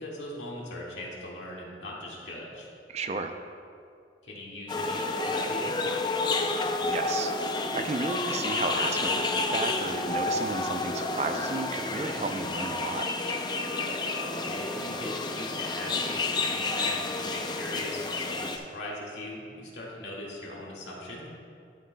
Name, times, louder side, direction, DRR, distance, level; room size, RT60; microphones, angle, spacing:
voice 1, 0.0-2.7 4.2-5.9 14.3-21.3, left 1 dB, 90° left, -4 dB, 1.9 m, -39 dB
voice 2, 2.9-3.3 6.8-7.3 7.8-13.1, right 3 dB, 40° right, 6 dB, 0.4 m, -33 dB
sound 1, 4.7-18.6, left 3 dB, 25° left, 0.4 m, -30 dB
sound 2, 13.3-17.4, left 3 dB, 70° left, 0.8 m, -46 dB
11.5 x 9.0 x 2.2 m, 2.4 s
head